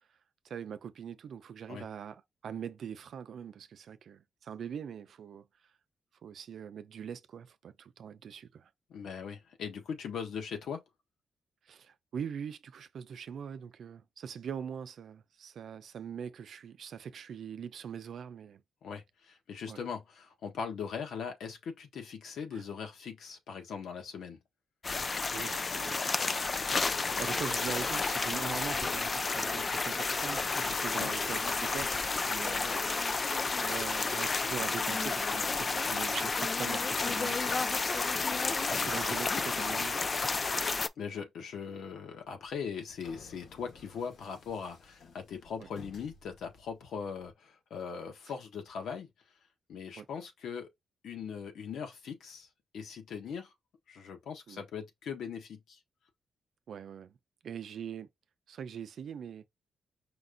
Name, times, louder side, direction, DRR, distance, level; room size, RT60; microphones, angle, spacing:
voice 1, 0.4-5.5 6.2-8.7 11.7-18.6 19.7-19.8 22.5-22.6 25.3-26.3 27.2-32.0 32.3-32.9 33.6-37.7 38.7-40.0 45.6-45.7 50.0-50.1 54.5-54.6 56.7-57.2 57.4-58.1 58.5-59.4, right 7 dB, 65° right, 0.6 m, -42 dB
voice 2, 8.9-10.8 18.8-24.4 30.9-31.1 38.7-39.1 41.0-49.1 49.7-50.7 51.0-52.5 52.7-53.5 53.9-55.8, left 6 dB, 85° left, 1.4 m, -40 dB
sound 1, 24.8-40.9, left 4 dB, 30° left, 0.4 m, -31 dB
sound 2, 25.8-40.3, right 2 dB, 20° right, 1.0 m, -48 dB
sound 3, 42.5-47.3, left 4 dB, 65° left, 1.3 m, -56 dB
5.2 x 2.3 x 3.9 m
wide cardioid pair, 145°, 0 cm